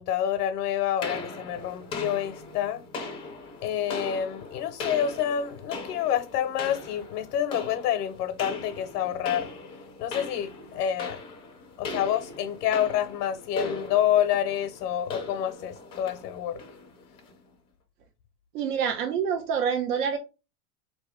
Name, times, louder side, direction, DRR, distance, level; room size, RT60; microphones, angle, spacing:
voice 1, 0.0-2.8 3.6-9.5 10.0-11.2 11.8-16.6, left 10 dB, 80° left, 0.8 m, -28 dB
sound 1, 1.0-17.4, left 3 dB, 10° left, 0.4 m, -39 dB
voice 2, 18.5-20.2, right 7 dB, 90° right, 0.9 m, -26 dB
4.2 x 2.8 x 3.5 m
supercardioid pair, 160°, 46 cm